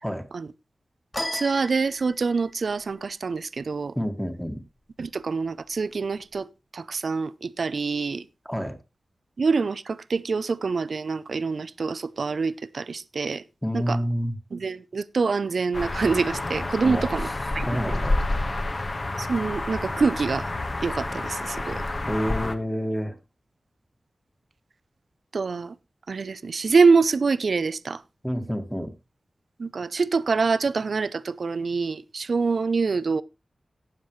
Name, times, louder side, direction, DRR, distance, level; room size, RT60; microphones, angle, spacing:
sound 1, 1.1-2.5, left 1 dB, 20° left, 2.7 m, -34 dB
voice 1, 1.3-3.9 5.0-6.5 6.7-8.3 9.4-13.4 13.7-14.0 14.5-17.7 19.2-20.5 20.8-21.8 25.3-25.7 26.1-28.0 29.6-33.2, right 4 dB, 75° right, 0.6 m, -25 dB
voice 2, 4.0-4.6 8.5-8.8 13.6-14.4 16.8-17.2 17.7-18.2 22.1-23.2 28.2-28.9, equal, ahead, 1.8 m, -28 dB
sound 2, 15.7-22.6, left 2 dB, 40° left, 1.4 m, -29 dB
18.0 x 7.5 x 3.1 m
wide cardioid pair, 80°, 0 cm